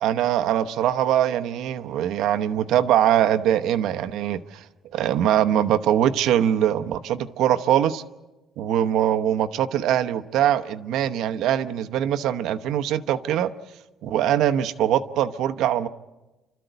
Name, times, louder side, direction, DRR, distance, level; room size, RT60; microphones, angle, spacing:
voice 1, 0.0-4.6 4.9-8.0 8.6-13.5 14.0-15.9, right 10 dB, 80° right, 10 dB, 0.9 m, -22 dB
30.0 x 13.5 x 8.1 m, 1.1 s
cardioid pair, 145°, 0 cm